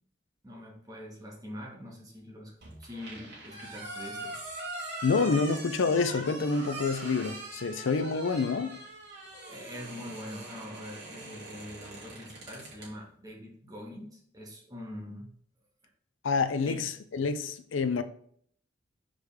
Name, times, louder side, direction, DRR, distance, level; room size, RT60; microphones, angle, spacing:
voice 1, 0.4-2.5 2.8-4.3 9.5-15.3 16.6-16.8, left 1 dB, 20° right, 1.7 m, -44 dB
sound 1, 2.6-12.9, right 2 dB, 60° right, 2.6 m, -42 dB
voice 2, 5.0-8.8 16.2-18.0, left 4 dB, 90° left, 0.5 m, -28 dB
6.4 x 4.9 x 3.5 m
head